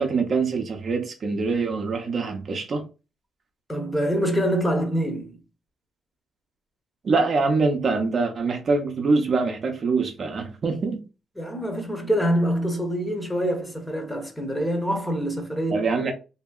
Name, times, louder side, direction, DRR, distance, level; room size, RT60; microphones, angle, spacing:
voice 1, 0.0-2.8 7.0-11.0 15.7-16.1, right 4 dB, 45° right, 0.6 m, -24 dB
voice 2, 3.7-5.4 11.4-15.8, equal, 10° left, 0.9 m, -25 dB
2.7 x 2.7 x 2.3 m
cardioid pair, 90°, 0 cm